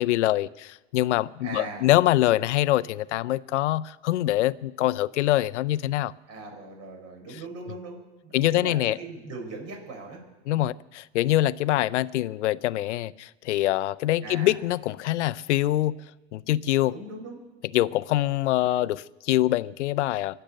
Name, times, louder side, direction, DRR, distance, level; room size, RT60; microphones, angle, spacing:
voice 1, 0.0-6.1 8.3-9.0 10.5-15.9 16.3-16.9 17.7-20.4, left 15 dB, 80° left, 0.6 m, -24 dB
voice 2, 1.4-1.9 6.3-10.7 14.2-14.6 16.9-17.4, right 3 dB, 45° right, 6.6 m, -40 dB
23.0 x 7.9 x 6.5 m
hypercardioid pair, 105°, 35 cm